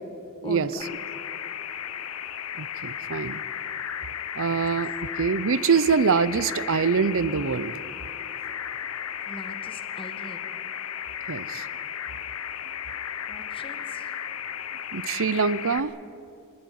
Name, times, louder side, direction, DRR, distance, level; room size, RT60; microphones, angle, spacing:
voice 1, 0.4-0.8 4.4-4.6 9.3-10.5 13.3-14.1, left 1 dB, 25° left, 7 dB, 1.8 m, -41 dB
sound 1, 0.8-15.8, left 9 dB, 70° left, 1.0 m, -35 dB
voice 2, 2.6-3.4 4.3-4.9 5.2-7.8 11.3-11.6 14.9-15.9, right 5 dB, 65° right, 17 dB, 0.7 m, -24 dB
24.0 x 19.0 x 9.6 m, 2.6 s
head